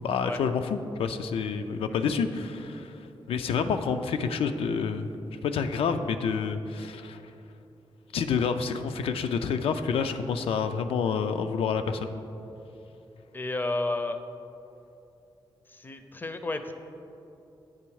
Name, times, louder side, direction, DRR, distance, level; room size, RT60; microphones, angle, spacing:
voice 1, 0.0-3.0 3.3-5.1 5.4-7.2 8.1-12.1, left 6 dB, 90° left, 8 dB, 0.4 m, -28 dB
voice 2, 13.3-14.2 15.7-16.7, left 2 dB, 20° left, 8 dB, 0.4 m, -32 dB
8.8 x 3.4 x 4.7 m, 2.8 s
cardioid pair, 100°, 9 cm